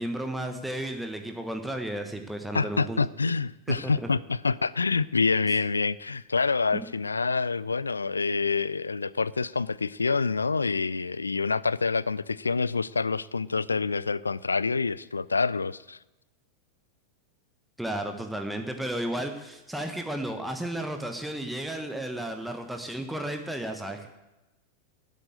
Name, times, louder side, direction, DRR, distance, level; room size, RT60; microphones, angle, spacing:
voice 1, 0.0-3.0 3.7-4.1 6.7-6.9 17.8-24.1, right 1 dB, 5° right, 5 dB, 1.1 m, -33 dB
voice 2, 2.5-16.0, left 4 dB, 75° left, 20 dB, 0.3 m, -27 dB
12.5 x 7.6 x 8.5 m, 1.0 s
figure-of-eight pair, 90°, 0 cm